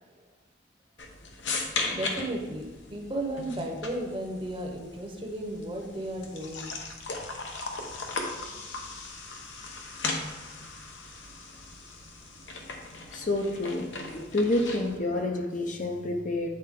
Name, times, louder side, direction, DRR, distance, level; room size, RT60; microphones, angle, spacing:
sound 1, 1.0-15.0, left 3 dB, 70° left, 0.9 m, -38 dB
voice 1, 1.9-6.8, right 1 dB, 30° right, 1 dB, 1.0 m, -34 dB
voice 2, 13.1-16.5, left 2 dB, 45° left, 3 dB, 0.7 m, -29 dB
8.8 x 4.3 x 3.7 m, 1.2 s
head